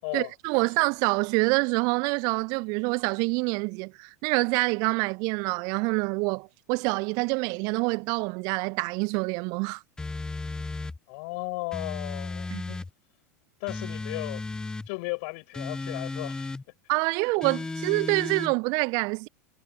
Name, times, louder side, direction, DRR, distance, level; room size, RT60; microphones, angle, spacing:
voice 1, 0.1-9.8 12.5-12.8 16.9-19.3, right 31 dB, 45° right, 1.2 m, -26 dB
sound 1, 10.0-11.0 11.7-12.9 13.7-14.9 15.5-16.6 17.4-18.5, left 3 dB, 10° left, 0.6 m, -34 dB
voice 2, 11.1-12.5 13.6-14.4 14.9-16.5, left 30 dB, 50° left, 8.0 m, -35 dB
figure-of-eight pair, 80°, 9 cm